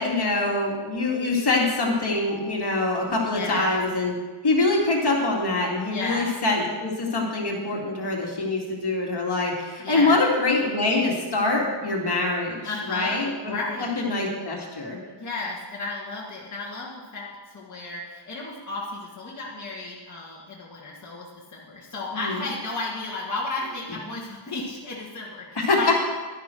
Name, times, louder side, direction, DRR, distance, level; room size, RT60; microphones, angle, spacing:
voice 1, 0.0-4.1 4.4-12.6 12.9-13.5 14.0-15.0 22.1-22.4 25.6-25.9, left 2 dB, 50° left, -1 dB, 2.4 m, -24 dB
voice 2, 3.3-3.7 5.9-6.3 9.8-10.2 12.6-14.0 15.2-25.9, left 3 dB, 35° left, -6 dB, 1.9 m, -33 dB
12.0 x 11.0 x 4.6 m, 1.3 s
wide cardioid pair, 130°, 49 cm